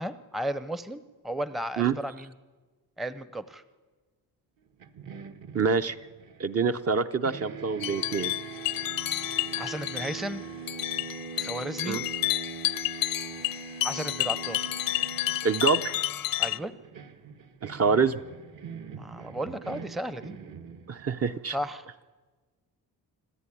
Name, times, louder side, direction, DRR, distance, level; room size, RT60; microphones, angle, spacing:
voice 1, 0.0-2.3 3.0-3.6 9.5-10.4 11.4-12.0 13.8-14.6 16.4-16.7 19.0-20.4 21.5-21.8, right 1 dB, ahead, 14 dB, 0.6 m, -34 dB
sound 1, 4.8-7.0 7.2-21.2, right 6 dB, 55° right, 1.5 m, -42 dB
voice 2, 5.5-6.0 6.4-8.3 11.9-12.0 15.4-15.9 17.6-18.2 20.9-21.6, right 5 dB, 35° right, 9 dB, 0.7 m, -26 dB
sound 2, 7.8-16.6, left 16 dB, 60° left, 0.6 m, -30 dB
26.5 x 14.0 x 10.0 m, 1.4 s
wide cardioid pair, 145°, 40 cm